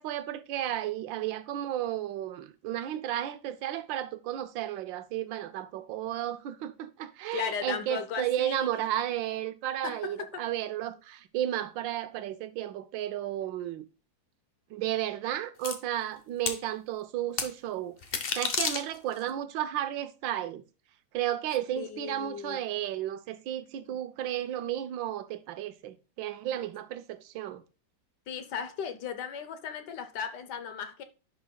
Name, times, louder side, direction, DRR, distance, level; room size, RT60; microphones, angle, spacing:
voice 1, 0.0-13.9 14.7-17.9 18.4-20.6 21.1-27.6, right 12 dB, 85° right, 1.4 m, -33 dB
voice 2, 7.3-8.6 9.8-10.4 21.8-22.6 28.3-31.0, left 7 dB, 70° left, 1.3 m, -36 dB
sound 1, 15.6-15.7 16.5-16.6 17.4-17.5 18.0-19.2, left 5 dB, 50° left, 0.7 m, -30 dB
10.5 x 5.4 x 2.3 m
omnidirectional pair, 2.0 m